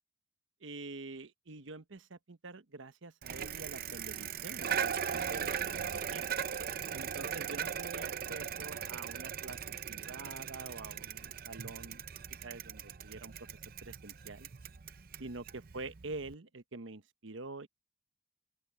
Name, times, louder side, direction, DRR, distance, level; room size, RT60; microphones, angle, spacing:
voice 1, 0.6-4.9 5.3-6.3 6.9-9.6 9.8-12.0 12.4-13.5 13.8-14.5 15.2-15.4 15.7-17.7, right 3 dB, 75° right, 1.0 m, -46 dB
Bicycle, 3.2-16.3, right 8 dB, 50° right, 0.6 m, -39 dB
open air
head